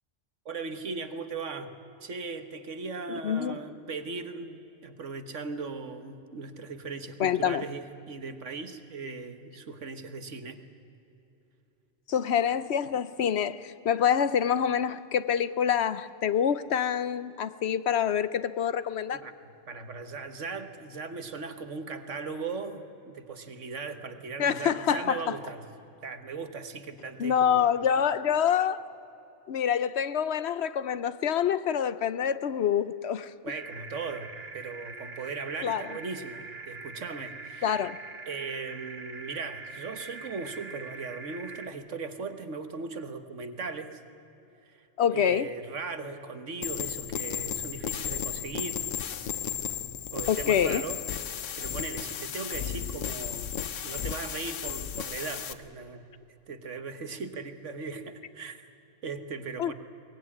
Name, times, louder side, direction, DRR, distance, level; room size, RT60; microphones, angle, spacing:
voice 1, 0.4-1.7 2.0-10.6 19.1-19.3 19.7-25.6 26.0-27.7 33.4-37.8 38.3-44.0 44.6-48.9 50.1-51.0 51.3-56.1 56.5-58.6 59.0-59.7, right 4 dB, 75° right, 1.7 m, -38 dB
voice 2, 3.1-3.5 7.2-7.6 12.1-19.2 24.4-25.4 27.2-28.8 29.5-33.3 35.6-35.8 37.6-38.0 45.0-45.5 50.3-50.8 59.6-59.7, left 8 dB, 65° left, 0.9 m, -26 dB
sound 1, 33.5-41.7, right 4 dB, 55° right, 1.6 m, -43 dB
sound 2, 46.6-55.5, left 9 dB, 85° left, 1.2 m, -34 dB
22.5 x 19.0 x 9.8 m
omnidirectional pair, 1.3 m